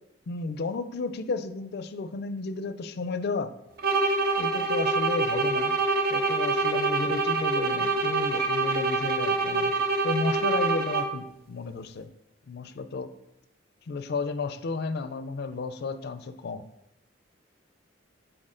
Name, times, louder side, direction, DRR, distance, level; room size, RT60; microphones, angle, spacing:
voice 1, 0.3-3.5 4.4-5.7 6.1-9.8 10.0-12.1 12.5-13.1 13.9-16.7, left 3 dB, 55° left, 11 dB, 0.4 m, -32 dB
sound 1, 3.8-11.3, right 3 dB, 50° right, 0.5 m, -26 dB
6.4 x 4.5 x 3.7 m, 0.84 s
head